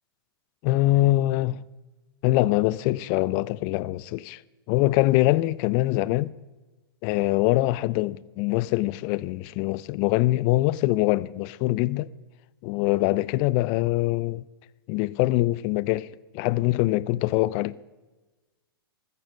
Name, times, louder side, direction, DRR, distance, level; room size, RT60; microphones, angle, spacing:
voice 1, 0.6-1.6 2.2-4.4 4.7-6.3 7.0-12.1 12.6-14.4 14.9-16.1 16.3-17.7, left 18 dB, 35° left, 0.5 m, -23 dB
15.0 x 13.5 x 5.1 m
figure-of-eight pair, 110°, 13 cm